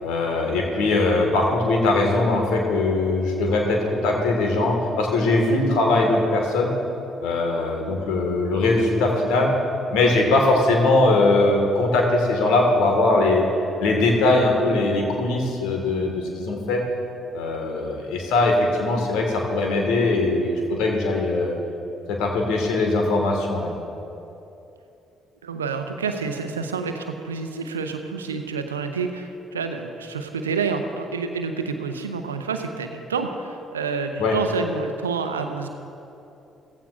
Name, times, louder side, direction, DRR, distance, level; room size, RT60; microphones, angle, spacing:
voice 1, 0.0-6.7 7.2-9.5 9.9-13.5 13.8-16.8 17.3-21.6 22.1-23.7 34.2-34.4, left 2 dB, 70° left, 1 dB, 1.7 m, -21 dB
voice 2, 25.4-35.7, right 5 dB, 90° right, 7 dB, 0.6 m, -28 dB
15.5 x 15.0 x 2.5 m, 2.8 s
figure-of-eight pair, 45°, 0 cm